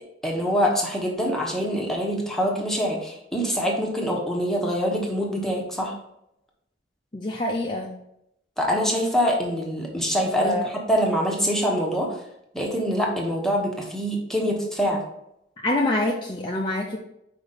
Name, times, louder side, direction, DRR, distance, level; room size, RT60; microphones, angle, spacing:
voice 1, 0.2-5.9 8.6-10.5 10.9-12.2 12.5-15.0, equal, ahead, -1 dB, 1.1 m, -24 dB
voice 2, 7.1-7.9 10.4-10.7 15.6-17.0, left 2 dB, 25° left, -1 dB, 0.6 m, -25 dB
5.1 x 5.0 x 4.1 m, 0.80 s
head